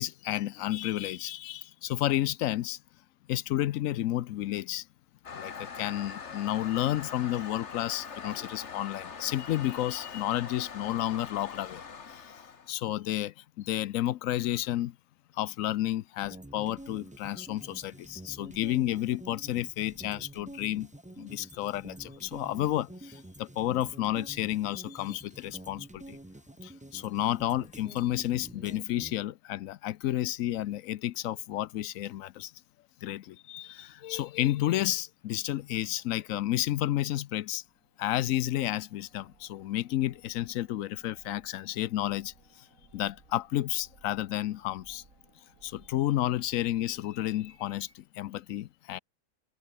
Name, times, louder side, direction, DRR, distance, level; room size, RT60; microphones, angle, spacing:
voice 1, 0.0-2.8 3.3-4.9 5.3-11.8 12.1-12.3 12.7-15.0 15.3-20.9 21.2-26.2 26.6-32.5 33.0-37.6 38.0-42.3 42.9-45.0 45.6-49.0, left 13 dB, 70° left, 0.8 m, -31 dB
Toilet flush, 5.2-12.7, left 6 dB, 40° left, 1.7 m, -43 dB
sound 1, 16.2-29.1, right 1 dB, 10° right, 0.4 m, -48 dB
sound 2, 37.5-48.1, right 3 dB, 45° right, 3.9 m, -62 dB
omnidirectional pair, 1.9 m